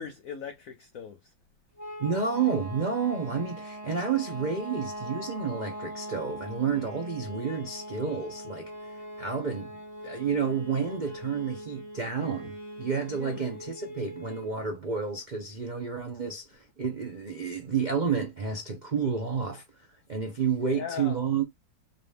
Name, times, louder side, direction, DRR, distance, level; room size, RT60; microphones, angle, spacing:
voice 1, 0.0-1.3 13.2-13.6 20.6-21.2, left 7 dB, 75° left, 0.7 m, -39 dB
sound 1, 1.8-14.6, equal, 10° left, 1.3 m, -41 dB
voice 2, 2.0-19.6 20.1-21.4, right 6 dB, 70° right, 0.4 m, -30 dB
3.8 x 2.6 x 3.3 m
omnidirectional pair, 2.1 m